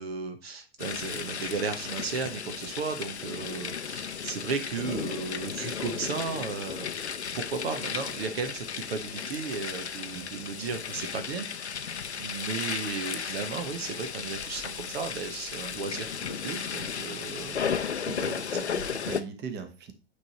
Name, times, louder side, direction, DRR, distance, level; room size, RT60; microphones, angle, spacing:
voice 1, 0.0-6.9 7.3-11.9 12.2-17.6 17.9-18.0, right 5 dB, 70° right, 7 dB, 0.9 m, -35 dB
sound 1, 0.8-19.2, left 7 dB, 90° left, 0.6 m, -35 dB
voice 2, 18.1-19.9, right 5 dB, 35° right, 8 dB, 1.1 m, -39 dB
8.7 x 3.3 x 4.1 m, 0.32 s
figure-of-eight pair, 90°, 32 cm